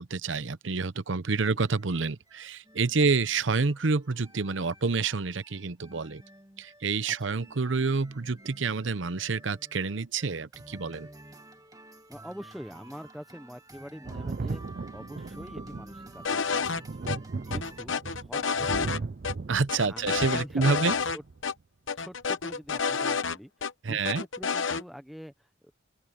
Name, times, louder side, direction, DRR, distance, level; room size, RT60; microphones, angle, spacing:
voice 1, 0.0-6.2 6.6-11.1 19.5-20.9 23.8-24.2, right 4 dB, 75° right, 0.8 m, -28 dB
sound 1, 1.6-17.8, right 1 dB, 20° right, 1.6 m, -51 dB
voice 2, 12.1-14.6 14.9-17.1 17.5-19.1 19.9-21.2 22.0-25.7, equal, ahead, 1.0 m, -45 dB
Thunder, 14.0-21.4 22.5-22.6, right 3 dB, 45° right, 0.5 m, -37 dB
sound 2, 16.2-16.8 17.1-17.2 17.5-19.0 19.2-19.3 19.7-21.2 21.4-21.5 21.9-23.7 24.0-24.8, left 5 dB, 80° left, 0.9 m, -29 dB
open air
head